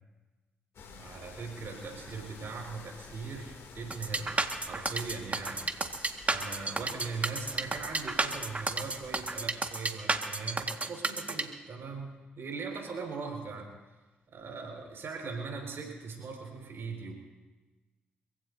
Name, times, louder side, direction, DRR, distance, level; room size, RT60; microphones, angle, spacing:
sound 1, 0.7-9.5, left 4 dB, 70° left, 3.0 m, -51 dB
voice 1, 1.0-5.7 6.3-13.7 14.3-17.1, right 4 dB, 65° right, 1 dB, 5.4 m, -40 dB
sound 2, 3.9-11.4, right 3 dB, 30° right, 1.9 m, -31 dB
27.0 x 16.5 x 2.8 m, 1.2 s
hypercardioid pair, 40°, 5 cm